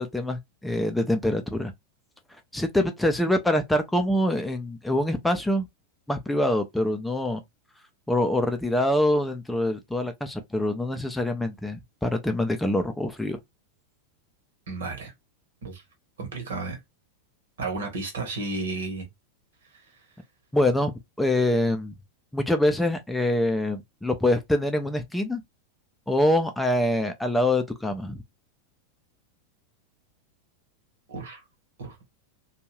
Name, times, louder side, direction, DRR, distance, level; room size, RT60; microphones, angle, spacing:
voice 1, 0.0-1.7 2.5-5.7 6.1-7.4 8.1-13.4 20.5-20.9 21.2-21.9 22.3-25.4 26.1-28.2, left 1 dB, 5° left, 0.5 m, -25 dB
voice 2, 14.7-15.1 15.6-15.8 16.2-16.8 17.6-19.1 31.1-31.4 31.8-32.1, right 3 dB, 65° right, 1.1 m, -33 dB
2.6 x 2.3 x 3.0 m
figure-of-eight pair, 90°, 0 cm